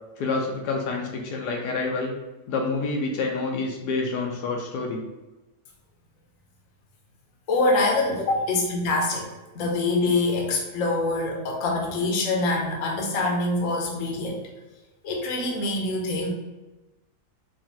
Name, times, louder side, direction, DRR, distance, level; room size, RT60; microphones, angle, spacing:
voice 1, 0.2-2.1 2.5-5.0, left 3 dB, 80° left, 1 dB, 1.2 m, -28 dB
voice 2, 7.5-9.3 9.5-14.4 15.0-16.3, left 2 dB, 60° left, 0 dB, 1.0 m, -25 dB
4.5 x 2.5 x 2.8 m, 1.1 s
omnidirectional pair, 1.8 m